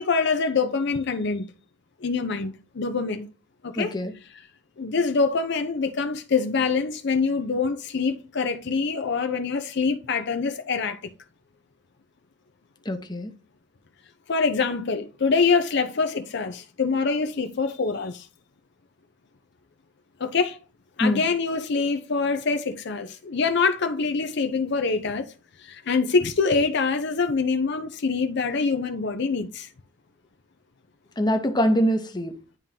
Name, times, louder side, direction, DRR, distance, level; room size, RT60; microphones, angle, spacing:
voice 1, 0.0-1.5 2.0-3.3 3.6-3.9 4.8-11.0 14.3-18.3 20.2-20.6 21.0-25.3 25.6-29.7, left 4 dB, 60° left, 0.6 m, -25 dB
voice 2, 3.8-4.1 12.9-13.3 21.0-21.2 31.2-32.3, equal, 20° left, 0.8 m, -23 dB
10.5 x 3.7 x 2.8 m
head